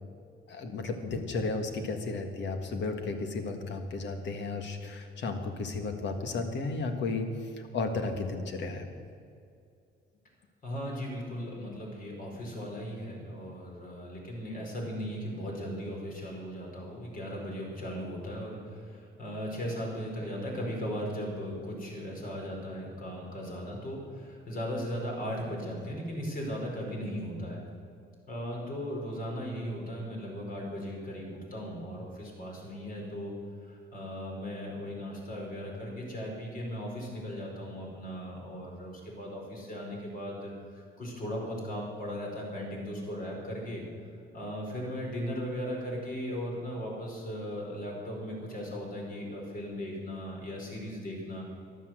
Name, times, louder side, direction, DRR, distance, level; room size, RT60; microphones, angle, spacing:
voice 1, 0.5-8.9, left 3 dB, 65° left, 6 dB, 1.8 m, -33 dB
voice 2, 10.6-27.6 28.3-33.3 33.6-43.8 44.3-51.5, equal, 45° left, -1 dB, 4.8 m, -37 dB
14.5 x 11.0 x 7.7 m, 2.4 s
cardioid pair, 125°, 20 cm